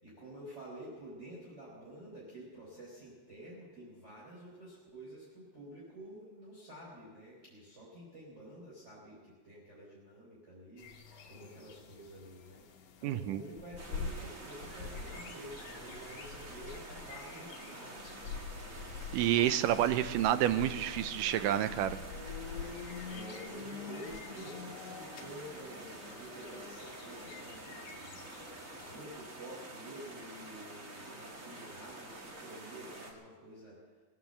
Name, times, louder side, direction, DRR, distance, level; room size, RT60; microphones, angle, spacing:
voice 1, 0.0-10.9 11.3-12.6 13.0-18.0 23.1-28.4 28.9-33.8, right 1 dB, 20° right, -6 dB, 5.0 m, -50 dB
sound 1, 10.8-29.1, left 5 dB, 60° left, 2.0 m, -46 dB
voice 2, 13.0-13.4 19.1-22.0, right 12 dB, 80° right, 12 dB, 2.1 m, -29 dB
sound 2, 13.8-33.1, right 2 dB, 35° right, 1.3 m, -48 dB
19.5 x 9.4 x 7.9 m, 1.3 s
omnidirectional pair, 4.1 m